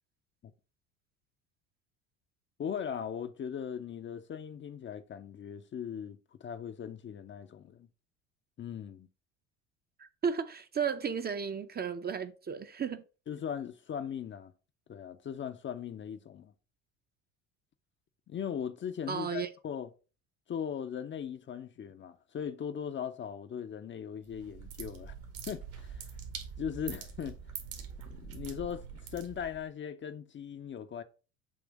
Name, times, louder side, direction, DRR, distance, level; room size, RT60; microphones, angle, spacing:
voice 1, 2.6-7.9 8.6-9.1 13.3-14.5 14.9-16.5 18.3-19.9 20.5-25.1 25.5-26.1 26.6-27.4 28.1-28.8 29.1-31.0, left 8 dB, 30° left, 0.6 m, -39 dB
voice 2, 10.0-13.0 19.1-19.5, right 6 dB, 25° right, 0.7 m, -34 dB
sound 1, 24.2-29.7, right 6 dB, 70° right, 2.0 m, -44 dB
7.1 x 2.8 x 5.2 m
hypercardioid pair, 75°, 38 cm